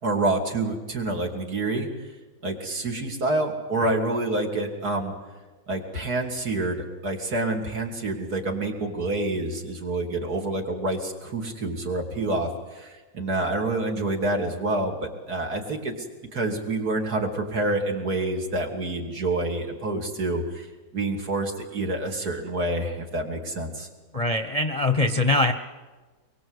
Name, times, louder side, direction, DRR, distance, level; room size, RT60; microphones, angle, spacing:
voice 1, 0.0-1.9 2.4-5.1 5.7-15.9 16.3-20.7 20.9-23.9, right 2 dB, 65° right, 1 dB, 3.2 m, -27 dB
voice 2, 24.1-25.5, left 2 dB, 25° left, 7 dB, 0.9 m, -22 dB
23.5 x 23.0 x 8.0 m, 1.2 s
omnidirectional pair, 1.8 m